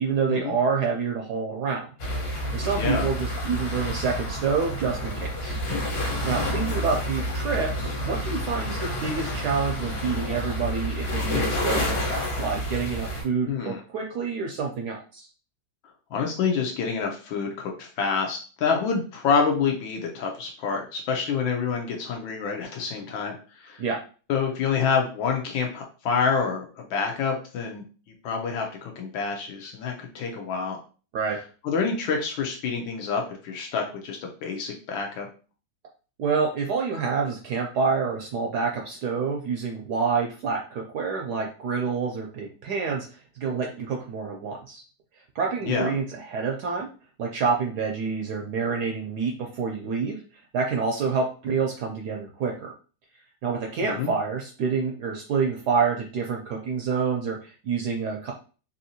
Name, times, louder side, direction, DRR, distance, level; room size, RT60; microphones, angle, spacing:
voice 1, 0.0-1.9 2.3-15.3 23.8-24.0 31.1-31.4 36.2-44.8 45.3-46.9 47.2-52.7 53.4-58.3, right 5 dB, 75° right, 1 dB, 0.9 m, -28 dB
sound 1, 2.0-13.2, equal, 55° left, 1.6 m, -29 dB
voice 2, 2.8-3.1 13.5-13.8 16.1-23.8 24.3-27.8 28.2-30.8 31.6-35.3 45.6-45.9 53.8-54.1, left 5 dB, 80° left, 1 dB, 1.4 m, -27 dB
3.5 x 2.7 x 2.7 m, 0.37 s
omnidirectional pair, 2.2 m